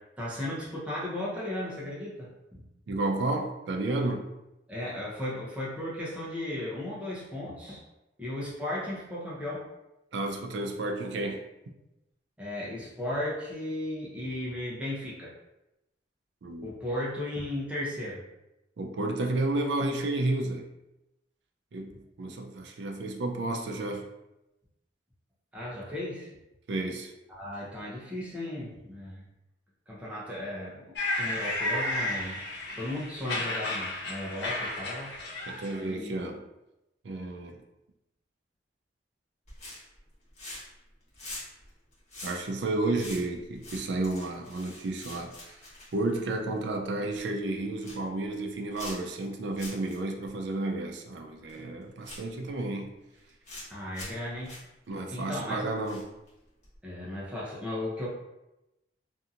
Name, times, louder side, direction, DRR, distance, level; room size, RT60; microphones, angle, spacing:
voice 1, 0.2-2.7 4.7-7.8 8.2-9.7 12.4-15.3 16.6-18.2 21.9-22.0 25.5-26.3 27.3-29.2 29.9-32.4 32.7-35.1 35.9-36.1 53.7-54.6 55.1-55.7 56.8-58.1, left 1 dB, 5° right, -7 dB, 0.7 m, -35 dB
voice 2, 2.9-4.3 10.1-11.4 16.4-16.7 18.8-20.7 21.7-24.1 26.7-27.1 35.5-36.4 37.0-37.6 42.2-45.6 45.9-52.9 54.9-56.1, right 2 dB, 70° right, 3 dB, 0.4 m, -31 dB
sound 1, 31.0-35.9, left 1 dB, 65° left, 0.6 m, -33 dB
sound 2, 39.5-40.0 40.3-40.8 41.1-46.7 47.1-47.2 47.6-48.1 48.7-49.2 49.5-50.0 50.2-50.3 51.5-51.6 52.0-52.6 53.2-53.7 53.9-54.2 54.4-54.6 55.8-56.3 56.6-56.8, left 2 dB, 40° left, 1.1 m, -44 dB
2.7 x 2.6 x 2.4 m, 0.93 s
head